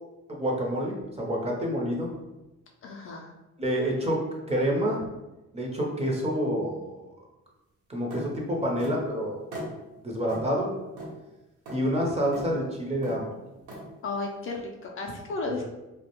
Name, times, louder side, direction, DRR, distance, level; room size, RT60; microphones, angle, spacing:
voice 1, 0.3-2.1 3.6-4.2 4.5-5.0 5.5-7.3 7.9-9.5 10.0-10.7 11.7-13.4, equal, 20° right, -2 dB, 0.6 m, -28 dB
voice 2, 2.8-3.3 14.0-15.7, left 3 dB, 45° left, 0 dB, 0.4 m, -34 dB
sound 1, 8.1-8.3 8.8-9.0 9.5-9.7 10.3-10.4 11.0-11.1 11.7-11.8 12.3-12.5 13.0-13.2 13.7-13.8, right 1 dB, 90° right, 0.8 m, -37 dB
2.3 x 2.1 x 2.9 m, 1.0 s
cardioid pair, 90°, 30 cm